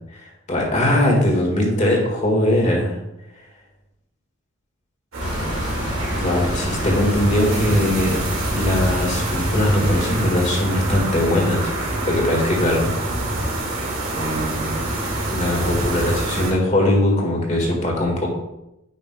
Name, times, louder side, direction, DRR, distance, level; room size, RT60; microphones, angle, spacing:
voice 1, 0.5-3.0 5.7-5.8 6.2-8.1 8.4-12.9 14.1-18.3, left 1 dB, 35° left, -1 dB, 1.7 m, -21 dB
sound 1, 5.1-16.5, right 1 dB, 90° right, 2.1 m, -26 dB
sound 2, 5.2-10.3, equal, 55° left, 2.4 m, -28 dB
9.6 x 5.7 x 2.3 m, 0.90 s
head